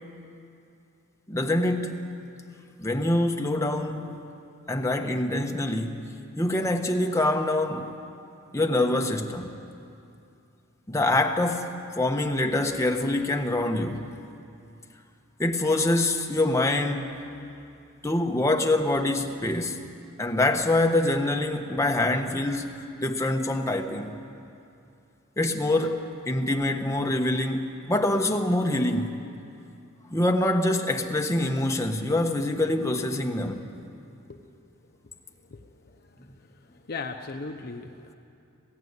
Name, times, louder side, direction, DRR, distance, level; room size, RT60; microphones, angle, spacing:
voice 1, 1.3-2.1 2.8-4.2 4.7-7.9 8.5-9.5 10.9-14.1 15.4-17.2 18.0-19.8 20.2-22.7 23.0-24.2 25.4-29.1 30.1-33.7, left 1 dB, 15° left, 1.2 m, -25 dB
voice 2, 35.5-38.1, left 4 dB, 45° left, 0.8 m, -39 dB
20.0 x 15.5 x 9.6 m
head